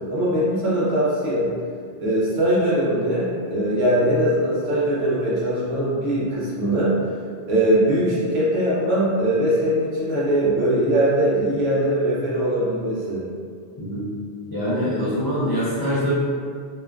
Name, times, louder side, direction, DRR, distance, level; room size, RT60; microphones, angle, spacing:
voice 1, 0.1-1.5 2.0-7.0 7.5-13.2, right 1 dB, 75° right, -7 dB, 1.0 m, -21 dB
voice 2, 13.8-14.1 14.5-16.1, equal, 30° left, -12 dB, 0.4 m, -24 dB
2.9 x 2.2 x 2.3 m, 2.1 s
omnidirectional pair, 1.1 m